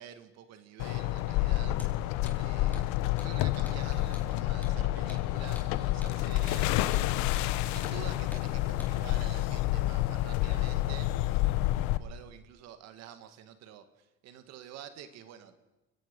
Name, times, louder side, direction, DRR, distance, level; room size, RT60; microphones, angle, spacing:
voice 1, 0.0-1.8 2.3-2.9 3.2-6.7 7.6-11.2 12.0-15.6, right 10 dB, 60° right, 10 dB, 2.0 m, -48 dB
sound 1, 0.8-12.0, left 15 dB, 75° left, 1.2 m, -29 dB
Hammer, 1.7-1.9 2.3-2.4 2.7-2.9 3.2-3.3 3.7-3.8 4.1-4.3 4.6-4.8 5.1-5.2 5.6-5.7 6.0-6.2 6.5-6.6 6.9-7.1 7.4-7.5 7.8-8.0 8.3-8.5 8.8-8.9, left 1 dB, 5° left, 4.9 m, -48 dB
30.0 x 17.0 x 5.5 m, 1.0 s
supercardioid pair, 115°, 29 cm